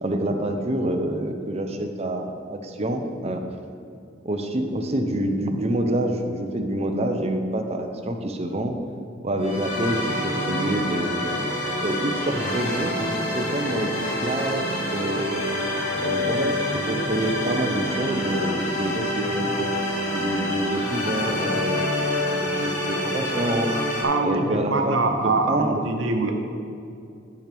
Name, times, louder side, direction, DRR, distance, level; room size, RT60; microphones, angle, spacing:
voice 1, 0.0-3.4 4.2-8.7 9.2-11.2 11.8-14.6 14.9-15.4 16.0-19.7 20.1-23.7 24.2-25.9, right 1 dB, 35° right, 4 dB, 0.7 m, -27 dB
sound 1, 9.4-24.0, left 1 dB, 40° left, 1.6 m, -27 dB
voice 2, 24.0-26.3, right 3 dB, 90° right, 4 dB, 0.9 m, -24 dB
12.0 x 6.0 x 3.4 m, 2.6 s
head